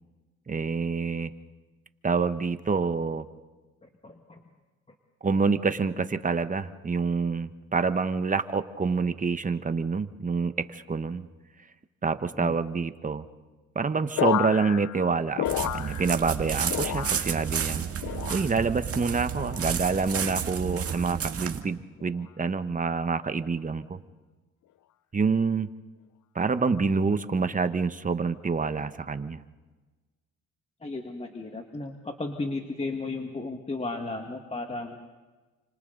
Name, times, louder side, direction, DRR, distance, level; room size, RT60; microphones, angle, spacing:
voice 1, 0.5-1.3 2.0-3.2 5.2-11.3 12.0-13.2 13.7-17.9 18.3-24.0 25.1-25.7 26.3-29.4, right 4 dB, 25° right, 11 dB, 1.2 m, -27 dB
voice 2, 3.8-4.4 12.3-12.5 30.8-35.0, left 3 dB, 20° left, 3 dB, 1.9 m, -34 dB
sound 1, 14.2-16.4 16.7-17.5 18.0-18.7 19.3-19.8 20.7-21.1 22.0-22.3, left 13 dB, 70° left, 0.7 m, -32 dB
sound 2, 15.4-21.6, right 7 dB, 50° right, 1.9 m, -31 dB
29.5 x 26.5 x 4.0 m, 1.3 s
cardioid pair, 90°, 30 cm